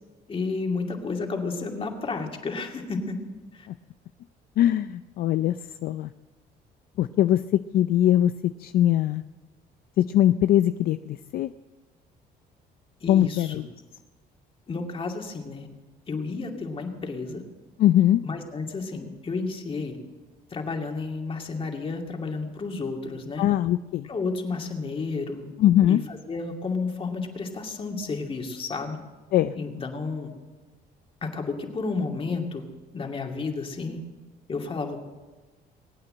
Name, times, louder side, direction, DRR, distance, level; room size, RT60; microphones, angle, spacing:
voice 1, 0.3-3.2 3.5-3.7 13.0-13.6 14.7-15.7 16.1-17.4 18.2-20.0 20.5-23.5 24.1-25.5 25.9-29.0 29.5-30.3 31.2-32.6 32.9-34.0 34.5-35.1, left 4 dB, 35° left, 2 dB, 2.5 m, -31 dB
voice 2, 4.6-5.5 5.8-6.1 7.0-8.3 8.6-9.2 10.0-11.5 13.1-13.7 17.8-18.2 23.4-24.1 25.6-26.0 29.3-29.5, left 12 dB, 60° left, 12 dB, 0.5 m, -21 dB
21.0 x 8.9 x 7.8 m, 1.3 s
cardioid pair, 110°, 17 cm